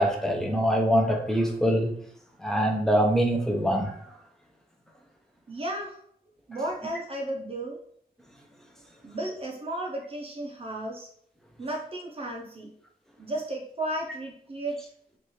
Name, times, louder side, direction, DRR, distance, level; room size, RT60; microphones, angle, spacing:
voice 1, 0.0-1.9 2.4-3.9, equal, 5° left, 1 dB, 0.6 m, -24 dB
voice 2, 5.5-6.0 6.5-7.8 9.0-11.1 11.6-12.7 13.2-14.7, right 1 dB, 35° right, 0 dB, 0.7 m, -34 dB
3.2 x 2.6 x 4.1 m, 0.64 s
wide cardioid pair, 165°, 16 cm